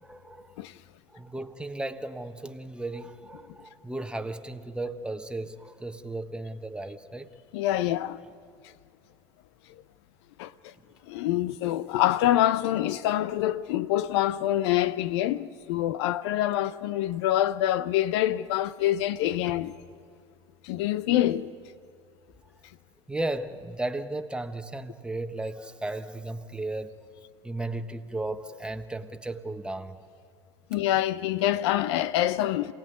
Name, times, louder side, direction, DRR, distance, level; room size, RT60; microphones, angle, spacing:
voice 1, 0.0-0.6 1.1-7.3 23.1-27.0 27.4-30.0, right 2 dB, 5° right, 1.3 m, -35 dB
voice 2, 7.5-8.2 9.7-9.8 10.4-10.7 11.0-19.7 20.6-21.5 30.7-32.7, left 13 dB, 75° left, 0.8 m, -26 dB
27.5 x 18.0 x 9.4 m
hypercardioid pair, 80°, 14 cm